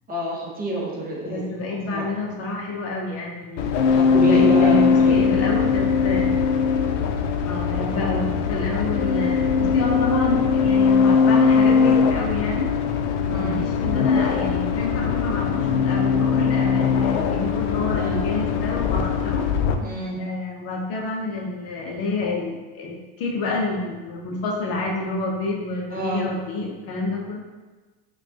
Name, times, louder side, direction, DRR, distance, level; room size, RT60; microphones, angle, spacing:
voice 1, 0.1-1.4 1.9-2.0 3.9-5.2 13.3-13.7 18.0-18.3 19.8-20.2 25.9-26.3, right 2 dB, 25° right, -3 dB, 0.9 m, -28 dB
voice 2, 1.2-3.7 4.2-6.3 7.5-12.8 13.3-19.5 20.2-27.4, left 2 dB, 40° left, -1 dB, 0.6 m, -28 dB
sound 1, 3.6-19.7, left 5 dB, 85° left, 0.5 m, -20 dB
4.9 x 2.3 x 2.7 m, 1.3 s
supercardioid pair, 115°, 35 cm